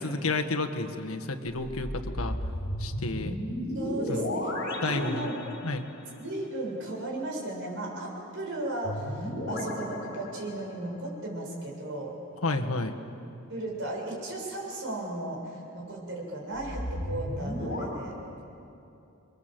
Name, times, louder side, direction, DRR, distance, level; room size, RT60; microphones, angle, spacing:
voice 1, 0.0-2.4 2.8-3.4 4.1-4.3 4.8-5.9 12.4-13.0, left 2 dB, 80° left, 5 dB, 1.7 m, -31 dB
sound 1, 1.6-6.0 8.8-10.9 16.5-17.8, left 1 dB, 55° left, 6.3 m, -34 dB
voice 2, 3.7-4.5 4.9-5.3 6.2-12.1 13.5-18.2, right 1 dB, 65° right, -1 dB, 7.6 m, -35 dB
29.5 x 23.0 x 7.8 m, 2.8 s
head